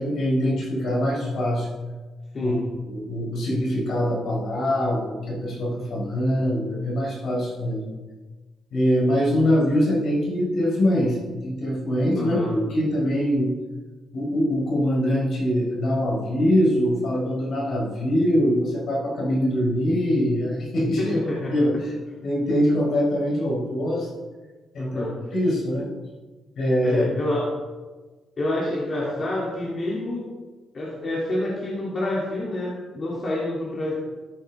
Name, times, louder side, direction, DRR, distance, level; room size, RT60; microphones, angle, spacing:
voice 1, 0.0-1.7 2.4-2.5 2.9-7.8 8.7-13.5 14.1-21.2 21.5-21.7 22.2-24.1 24.7-25.9 26.6-27.0, equal, 65° left, -3 dB, 4.1 m, -23 dB
voice 2, 2.3-2.6 12.1-12.5 21.0-21.5 24.8-25.1 26.8-27.5 28.4-30.3 30.7-33.9, left 1 dB, 40° left, -5 dB, 2.7 m, -28 dB
14.0 x 9.1 x 3.5 m, 1.3 s
cardioid pair, 95°, 0 cm